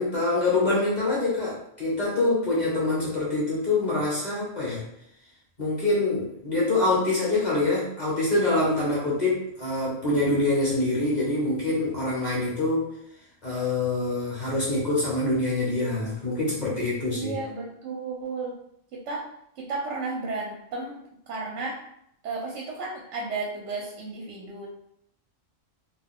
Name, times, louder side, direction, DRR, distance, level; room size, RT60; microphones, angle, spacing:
voice 1, 0.0-4.8 5.6-12.9 13.4-17.4, left 2 dB, 40° left, -6 dB, 1.0 m, -25 dB
voice 2, 17.1-18.6 18.9-19.3 19.6-21.8 22.2-24.7, right 3 dB, 75° right, -2 dB, 0.9 m, -33 dB
2.6 x 2.2 x 3.5 m, 0.73 s
omnidirectional pair, 1.2 m